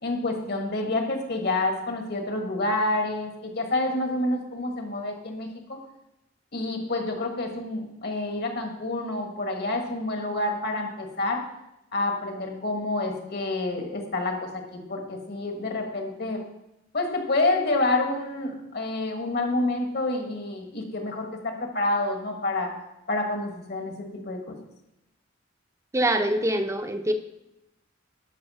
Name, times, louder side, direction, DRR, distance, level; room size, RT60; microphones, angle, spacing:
voice 1, 0.0-5.8 6.5-11.4 11.9-16.4 16.9-22.7 23.1-24.6, left 2 dB, 55° left, 4 dB, 1.7 m, -28 dB
voice 2, 25.9-27.1, right 1 dB, 15° right, 7 dB, 0.7 m, -24 dB
11.5 x 6.4 x 5.6 m, 0.89 s
head